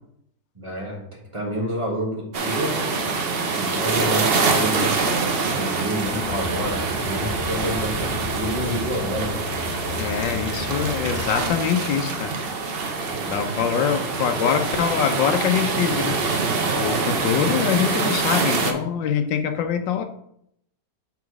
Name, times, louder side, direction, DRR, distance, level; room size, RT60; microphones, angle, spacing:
voice 1, 0.5-2.8 3.5-4.9 5.4-9.4, equal, 20° right, 1.4 m, -29 dB
sound 1, 2.3-18.7, right 4 dB, 50° right, 0.7 m, -25 dB
Car, 6.0-11.5, left 2 dB, 40° left, 0.7 m, -33 dB
voice 2, 10.0-12.3 13.2-16.2 16.8-20.0, left 8 dB, 80° left, 1.5 m, -24 dB
6.9 x 4.1 x 4.7 m
omnidirectional pair, 2.0 m